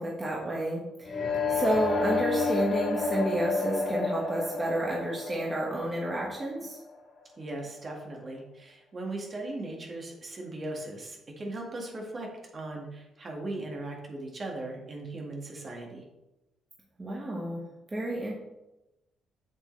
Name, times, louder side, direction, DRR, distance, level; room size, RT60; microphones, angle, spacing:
voice 1, 0.0-6.8 17.0-17.6 17.9-18.4, right 1 dB, 20° right, -3 dB, 1.5 m, -30 dB
sound 1, 1.0-6.9, left 4 dB, 55° left, 2.1 m, -30 dB
voice 2, 7.4-16.0, right 2 dB, 40° right, 0 dB, 1.8 m, -38 dB
7.4 x 6.4 x 3.3 m, 0.96 s
cardioid pair, 90°, 0 cm